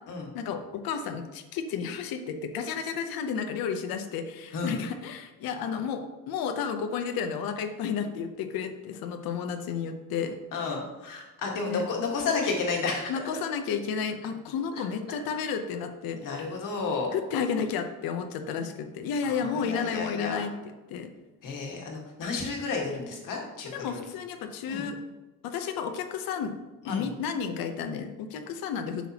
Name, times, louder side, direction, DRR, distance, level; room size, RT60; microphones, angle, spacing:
voice 1, 0.3-10.4 11.7-11.8 13.1-16.5 17.1-20.5 20.9-21.1 23.7-25.0 25.4-26.6 26.9-29.1, left 6 dB, 80° left, 7 dB, 0.8 m, -32 dB
voice 2, 10.5-13.1 16.2-17.1 19.2-20.4 21.4-24.0 24.6-24.9 26.8-27.1, left 4 dB, 65° left, 0 dB, 1.6 m, -31 dB
8.2 x 5.8 x 2.9 m, 1.1 s
cardioid pair, 150°, 35 cm